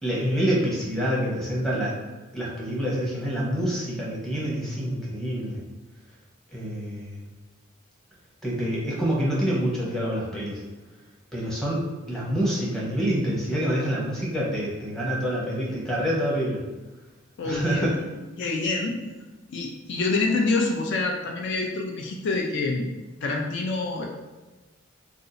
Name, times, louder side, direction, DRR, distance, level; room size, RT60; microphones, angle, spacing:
voice 1, 0.0-1.9 2.3-5.6 6.5-7.2 8.4-10.6 11.3-11.8 12.1-16.6 17.4-17.9, equal, ahead, -6 dB, 0.8 m, -27 dB
voice 2, 17.4-17.9 18.4-19.0 19.5-22.9 23.2-24.0, left 3 dB, 60° left, 1 dB, 0.4 m, -26 dB
2.6 x 2.3 x 3.8 m, 1.2 s
head